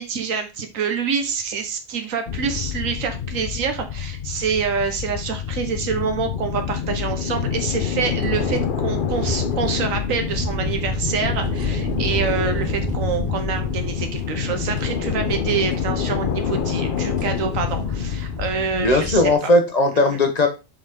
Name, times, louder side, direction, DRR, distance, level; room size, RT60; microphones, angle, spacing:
voice 1, 0.0-19.3 20.1-20.2, right 6 dB, 70° right, 6 dB, 1.4 m, -26 dB
sound 1, 2.3-19.3, left 8 dB, 50° left, 0.7 m, -27 dB
sound 2, 8.2-18.5, right 2 dB, 20° right, 0.7 m, -32 dB
voice 2, 18.7-20.5, left 2 dB, 30° left, 5 dB, 1.0 m, -18 dB
7.0 x 4.1 x 3.6 m, 0.29 s
omnidirectional pair, 1.5 m